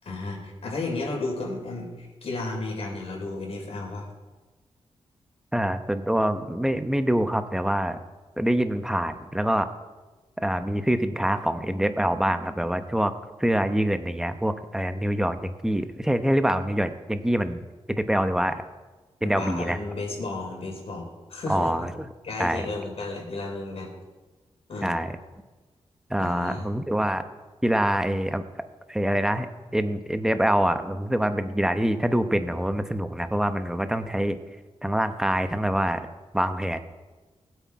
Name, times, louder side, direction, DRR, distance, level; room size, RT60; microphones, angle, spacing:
voice 1, 0.0-4.1 19.2-21.9 22.2-23.9 24.7-25.0 26.2-26.7, left 2 dB, 65° left, 0 dB, 4.1 m, -33 dB
voice 2, 5.5-8.0 8.4-9.7 10.4-13.1 13.4-17.6 17.9-18.6 19.2-19.8 21.5-21.9 22.4-22.6 24.8-25.1 26.1-27.2 27.6-28.4 28.9-29.5 29.7-34.4 34.8-36.1 36.3-36.8, equal, 5° right, 9 dB, 0.9 m, -25 dB
20.0 x 8.1 x 4.7 m, 1.2 s
wide cardioid pair, 100°, 11 cm